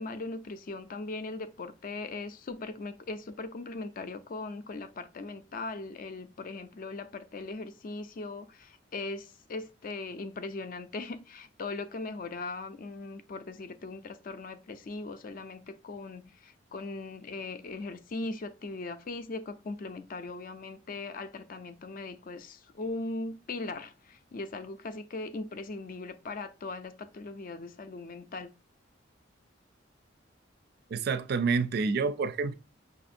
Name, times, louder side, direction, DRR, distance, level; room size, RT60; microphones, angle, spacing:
voice 1, 0.0-28.5, left 3 dB, 45° left, 0.4 m, -39 dB
voice 2, 30.9-32.5, right 4 dB, 55° right, 0.3 m, -28 dB
5.6 x 2.5 x 2.6 m
head